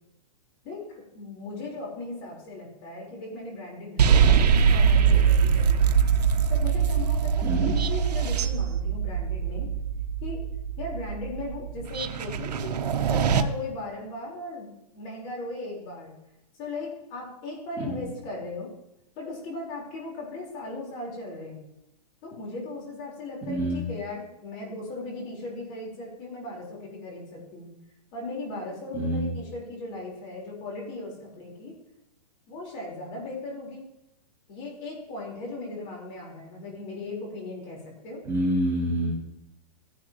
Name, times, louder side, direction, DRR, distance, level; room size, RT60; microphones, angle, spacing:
voice 1, 0.6-5.9 6.5-9.7 10.2-10.4 10.8-12.7 13.1-16.1 16.5-18.7 19.2-21.6 22.2-27.7 28.1-31.7 32.5-33.8 34.5-38.2, left 2 dB, 30° left, -2 dB, 4.7 m, -37 dB
sound 1, 4.0-13.4, right 7 dB, 80° right, 1.1 m, -23 dB
voice 2, 7.4-7.7 23.5-23.8 28.9-29.3 38.3-39.1, right 1 dB, 15° right, -6 dB, 3.1 m, -26 dB
16.0 x 11.0 x 3.2 m, 0.87 s
hypercardioid pair, 165°, 20 cm